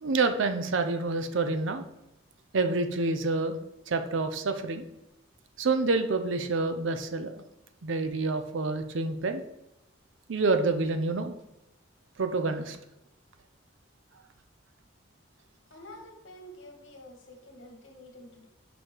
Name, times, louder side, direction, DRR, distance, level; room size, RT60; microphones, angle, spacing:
voice 1, 0.0-1.8 2.5-3.6 3.9-4.8 5.6-7.3 7.8-9.4 10.3-11.3 12.2-12.8, right 3 dB, 85° right, 8 dB, 0.6 m, -28 dB
voice 2, 15.7-18.5, left 1 dB, 90° left, 2 dB, 1.7 m, -48 dB
6.2 x 4.9 x 4.6 m, 0.88 s
head